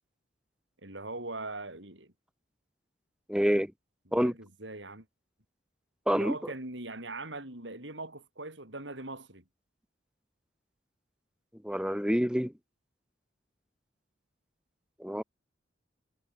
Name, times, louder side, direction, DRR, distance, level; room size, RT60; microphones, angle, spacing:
voice 1, 0.8-2.1 4.1-5.1 6.1-9.4, right 2 dB, 70° right, 7.8 m, -41 dB
voice 2, 3.3-3.7 4.1-4.3 6.1-6.5 11.6-12.5 15.0-15.2, equal, 5° right, 3.0 m, -27 dB
head